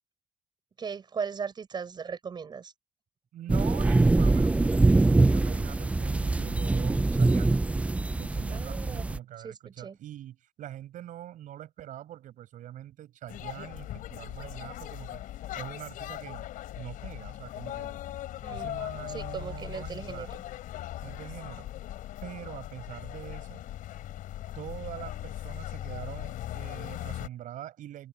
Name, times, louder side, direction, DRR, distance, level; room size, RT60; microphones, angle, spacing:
voice 1, 0.8-2.7 8.5-9.0 9.4-10.0 18.4-18.7 19.1-20.3, right 6 dB, 35° right, 6.7 m, -37 dB
voice 2, 3.3-15.2 15.5-16.5 16.8-17.9 18.5-20.3 21.0-21.7 22.2-23.6 24.6-28.1, right 12 dB, 70° right, 6.9 m, -43 dB
sound 1, 3.5-9.2, right 2 dB, 10° right, 0.4 m, -24 dB
sound 2, 13.3-27.3, left 13 dB, 85° left, 4.2 m, -39 dB
cardioid pair, 160°, 14 cm